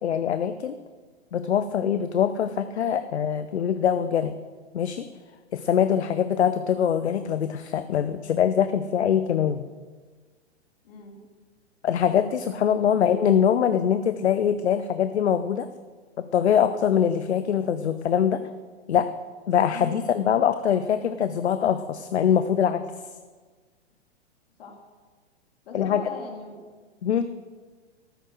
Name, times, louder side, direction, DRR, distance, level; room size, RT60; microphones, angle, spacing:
voice 1, 0.0-0.8 1.3-4.3 4.7-5.1 5.5-9.7 11.8-15.7 16.2-18.4 18.9-19.1 19.5-22.8 25.7-26.0 27.0-27.3, left 8 dB, 70° left, 11 dB, 0.7 m, -23 dB
voice 2, 10.8-11.2 12.7-13.0 19.7-20.0 24.6-24.8 25.6-26.6, left 3 dB, 55° left, 2 dB, 2.9 m, -40 dB
13.0 x 7.9 x 6.3 m, 1.4 s
figure-of-eight pair, 110°, 34 cm